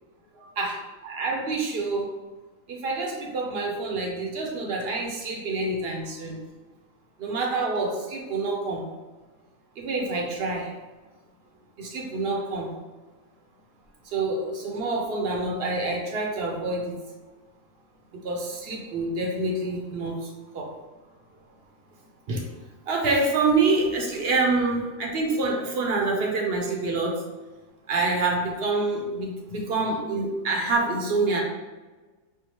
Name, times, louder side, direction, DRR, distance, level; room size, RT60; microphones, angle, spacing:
voice 1, 0.3-2.1 2.7-6.4 7.2-8.9 9.8-10.7 11.8-12.7 14.1-17.0 18.1-20.7 22.3-22.5 22.9-27.2 27.9-31.4, right 3 dB, 55° right, 0 dB, 0.7 m, -27 dB
4.6 x 2.1 x 2.9 m, 1.2 s
omnidirectional pair, 1.4 m